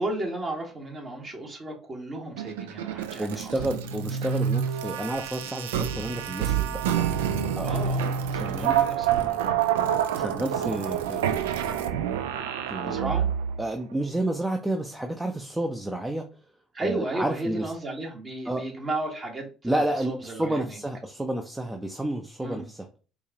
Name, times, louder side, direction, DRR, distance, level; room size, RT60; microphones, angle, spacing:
voice 1, 0.0-3.5 7.6-8.1 8.4-9.4 12.8-13.3 16.7-20.8 22.4-22.6, right 2 dB, 40° right, 1.5 m, -34 dB
sound 1, 2.4-13.6, right 8 dB, 85° right, 0.3 m, -27 dB
voice 2, 3.2-6.8 7.6-7.7 8.3-8.8 10.2-12.0 12.7-13.0 13.6-16.3 16.8-17.6 18.5-18.6 19.6-22.8, right 1 dB, 10° right, 0.5 m, -30 dB
4.5 x 2.4 x 2.9 m
hypercardioid pair, 65°, 0 cm